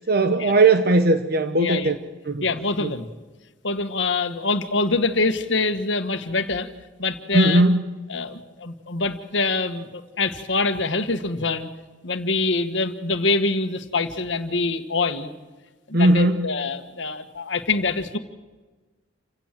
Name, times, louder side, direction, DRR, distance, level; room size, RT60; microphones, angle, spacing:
voice 1, 0.1-2.0 2.3-2.4 2.8-2.9 7.3-7.8 15.9-16.4, right 2 dB, 55° right, 9 dB, 1.0 m, -18 dB
voice 2, 1.5-1.9 2.4-3.1 3.6-6.7 7.0-7.6 8.1-11.7 12.0-15.3 15.9-18.2, left 3 dB, 70° left, 9 dB, 1.6 m, -25 dB
28.0 x 16.5 x 7.6 m, 1.2 s
head